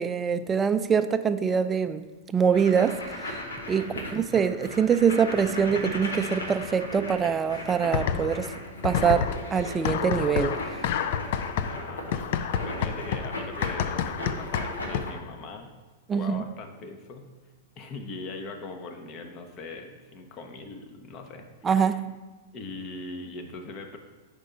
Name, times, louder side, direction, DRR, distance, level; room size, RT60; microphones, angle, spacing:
voice 1, 0.0-3.4 3.7-8.5 8.8-10.6 16.1-16.4 21.6-22.1, right 7 dB, 20° right, 11 dB, 0.3 m, -24 dB
sound 1, 2.5-15.1, left 1 dB, 85° left, 0.9 m, -37 dB
voice 2, 3.8-4.2 11.6-15.7 16.1-17.3 17.8-22.0 22.5-24.0, left 3 dB, 35° left, 4 dB, 0.8 m, -41 dB
sound 2, 7.9-8.5 8.8-15.3, left 8 dB, 60° left, 0.4 m, -29 dB
5.1 x 4.4 x 5.1 m, 1.3 s
hypercardioid pair, 110°, 0 cm